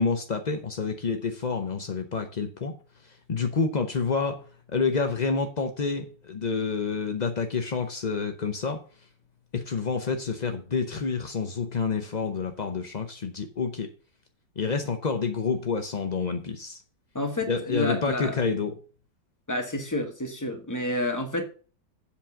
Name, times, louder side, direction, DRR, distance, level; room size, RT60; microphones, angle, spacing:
voice 1, 0.0-2.7 3.3-4.4 4.7-8.8 9.5-13.9 14.6-16.8 17.5-18.7, left 5 dB, 65° left, 0.4 m, -28 dB
voice 2, 17.1-18.4 19.5-21.4, left 1 dB, 10° left, 1.1 m, -29 dB
7.6 x 5.2 x 7.0 m
omnidirectional pair, 2.0 m